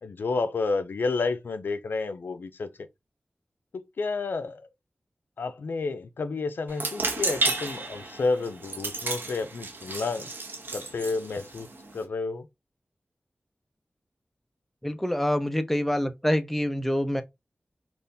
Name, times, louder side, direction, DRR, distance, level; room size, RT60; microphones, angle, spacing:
voice 1, 0.0-2.7 3.7-4.7 5.4-10.3 10.7-12.5, left 3 dB, 85° left, 0.4 m, -30 dB
sound 1, 6.7-12.0, right 3 dB, 75° right, 1.0 m, -32 dB
voice 2, 14.8-17.2, equal, 5° left, 0.5 m, -26 dB
3.5 x 2.4 x 2.6 m
wide cardioid pair, 75°, 3 cm